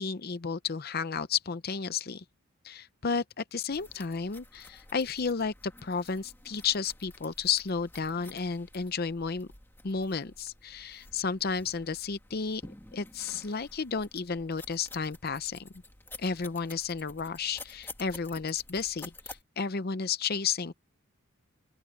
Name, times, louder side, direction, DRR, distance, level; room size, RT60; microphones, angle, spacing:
voice 1, 0.0-2.2 2.6-9.5 9.8-12.6 12.9-15.7 16.2-20.7, left 5 dB, 45° left, 0.6 m, -32 dB
sound 1, 3.7-19.4, left 2 dB, 10° left, 1.9 m, -51 dB
open air
head